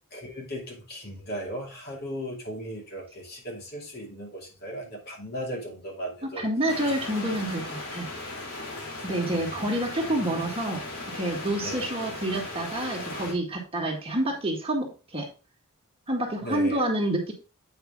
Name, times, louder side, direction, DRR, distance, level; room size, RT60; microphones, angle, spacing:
voice 1, 0.1-6.4 9.2-9.4 11.6-12.0 16.4-16.8, equal, 50° left, -1 dB, 2.6 m, -37 dB
voice 2, 6.2-8.1 9.0-10.8 11.1-15.3 16.1-17.3, right 1 dB, 25° right, 0 dB, 1.8 m, -28 dB
sound 1, 6.7-13.3, left 2 dB, 75° left, 2.5 m, -37 dB
8.5 x 5.4 x 3.7 m, 0.32 s
head